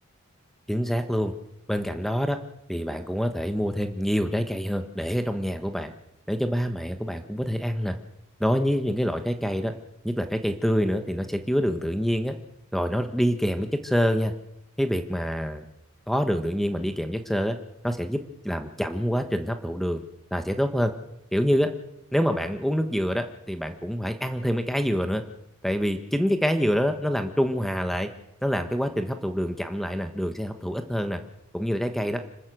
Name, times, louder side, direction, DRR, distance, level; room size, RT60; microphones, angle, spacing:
voice 1, 0.7-1.3 1.7-2.4 2.7-5.9 6.3-8.0 8.4-9.7 10.0-12.3 12.7-14.3 14.8-15.6 16.1-17.6 17.8-20.0 20.3-20.9 21.3-21.7 22.1-25.2 25.6-28.1 28.4-31.2 31.5-32.2, equal, ahead, 7 dB, 1.3 m, -26 dB
26.0 x 13.0 x 7.9 m, 0.84 s
head